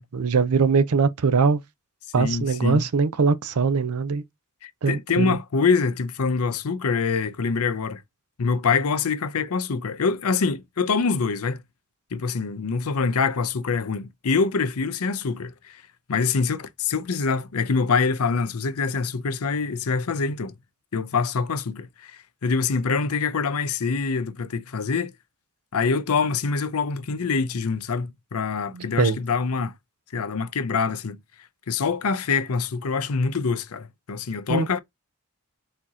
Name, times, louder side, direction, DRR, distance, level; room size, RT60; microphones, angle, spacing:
voice 1, 0.1-1.6 2.1-4.2 4.8-5.4 28.7-29.2 34.5-34.7, right 5 dB, 85° right, 0.6 m, -21 dB
voice 2, 2.2-2.9 4.6-8.0 8.4-11.6 12.1-15.8 16.1-20.5 20.9-25.1 25.7-29.7 30.1-31.2 31.7-34.8, left 5 dB, 80° left, 0.6 m, -25 dB
4.4 x 2.9 x 3.6 m
head